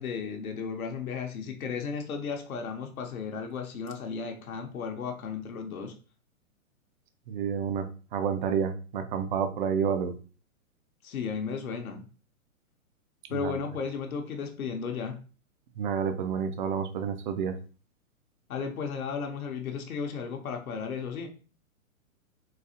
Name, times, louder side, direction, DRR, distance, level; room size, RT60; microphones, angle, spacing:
voice 1, 0.0-5.9 11.0-12.0 13.3-15.2 18.5-21.3, left 6 dB, 80° left, 3 dB, 0.8 m, -34 dB
voice 2, 7.3-10.1 13.3-13.5 15.8-17.6, right 7 dB, 40° right, 9 dB, 0.4 m, -29 dB
4.0 x 2.3 x 2.7 m, 0.37 s
hypercardioid pair, 125°, 42 cm